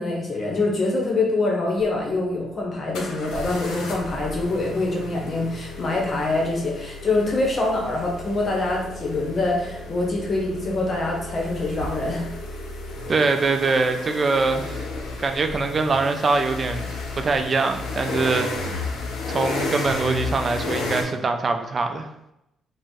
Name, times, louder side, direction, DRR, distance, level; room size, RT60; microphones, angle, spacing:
voice 1, 0.0-12.3, left 2 dB, 45° left, -1 dB, 0.7 m, -25 dB
sound 1, 1.8-1.9 2.9-21.0, left 2 dB, 85° left, 0.6 m, -33 dB
voice 2, 13.1-14.8 15.2-18.8 19.3-22.1, right 3 dB, 40° right, 6 dB, 0.3 m, -23 dB
2.5 x 2.0 x 3.5 m, 0.85 s
cardioid pair, 90°, 0 cm